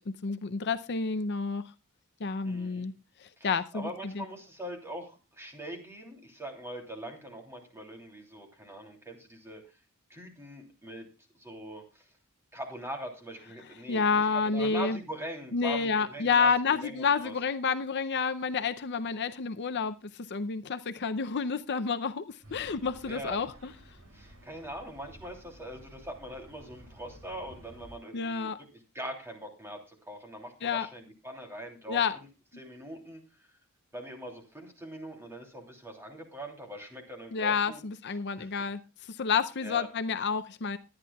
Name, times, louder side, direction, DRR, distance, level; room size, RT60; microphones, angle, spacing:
voice 1, 0.0-1.7 2.2-2.9 3.2-4.2 13.9-15.0 15.5-23.7 28.1-28.6 30.6-30.9 31.9-32.1 37.3-40.8, left 5 dB, 50° left, 11 dB, 0.6 m, -29 dB
voice 2, 2.4-2.9 3.4-3.5 3.7-9.8 10.1-11.1 11.4-12.1 12.5-17.3 23.0-23.4 24.1-28.6 28.9-32.3 32.6-33.5 33.9-37.8 38.4-38.5 39.6-39.9, right 1 dB, 10° right, 2 dB, 3.0 m, -42 dB
sound 1, 22.4-28.0, right 1 dB, 70° right, 6.8 m, -53 dB
21.0 x 10.0 x 2.3 m, 0.29 s
head